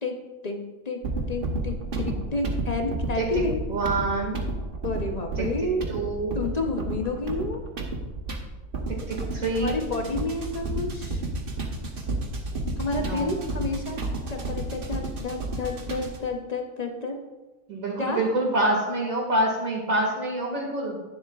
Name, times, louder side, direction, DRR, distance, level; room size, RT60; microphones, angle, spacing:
voice 1, 0.0-3.6 4.8-5.8 6.3-7.6 9.6-11.2 12.8-17.3 18.0-18.3, left 2 dB, 35° left, 3 dB, 0.7 m, -30 dB
sound 1, 1.0-16.3, right 2 dB, 45° right, 1.1 m, -32 dB
voice 2, 3.7-4.4 5.4-5.5 5.9-6.4 8.9-9.8 13.0-13.4 17.7-21.0, right 2 dB, 70° right, -1 dB, 2.6 m, -26 dB
11.0 x 9.8 x 2.4 m, 1.1 s
omnidirectional pair, 1.5 m